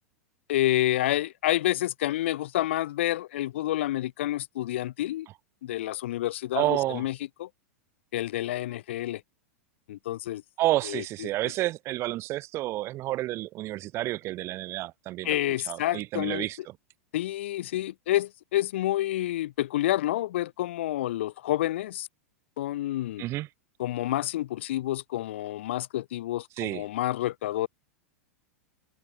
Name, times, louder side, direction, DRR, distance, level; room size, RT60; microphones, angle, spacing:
voice 1, 0.5-5.3 5.6-7.5 8.1-9.2 9.9-10.4 10.8-11.3 15.2-16.5 17.1-22.1 22.6-23.3 23.8-27.7, left 14 dB, 55° left, 3.2 m, -29 dB
voice 2, 6.5-7.0 10.6-15.3 15.7-16.6 23.2-23.5 26.6-26.8, right 16 dB, 35° right, 4.8 m, -30 dB
figure-of-eight pair, 90°, 8 cm